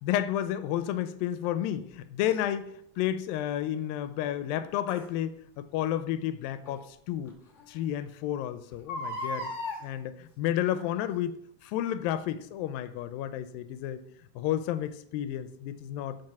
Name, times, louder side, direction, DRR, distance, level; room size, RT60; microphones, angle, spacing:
voice 1, 0.0-7.3 7.7-9.5 9.8-11.4 11.6-14.0 14.4-16.2, left 11 dB, 90° left, 12 dB, 2.4 m, -31 dB
Crying sobbing, 2.3-2.4 4.9-5.1 6.6-6.7 7.3-7.4 7.6-7.7 8.7-9.8 10.8-11.1 11.7-11.8, left 1 dB, 65° left, 0.7 m, -36 dB
7.8 x 7.2 x 5.9 m, 0.70 s
omnidirectional pair, 4.1 m